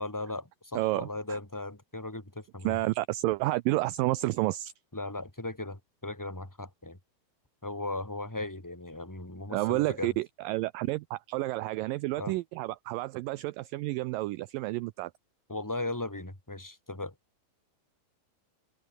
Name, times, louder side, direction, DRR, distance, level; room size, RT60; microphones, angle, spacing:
voice 1, 0.0-2.8 4.9-7.0 7.6-10.1 12.2-12.3 15.5-17.1, left 2 dB, 5° left, 3.1 m, -37 dB
voice 2, 0.7-1.4 2.6-4.7 9.5-15.1, right 19 dB, 80° right, 2.1 m, -30 dB
omnidirectional pair, 4.6 m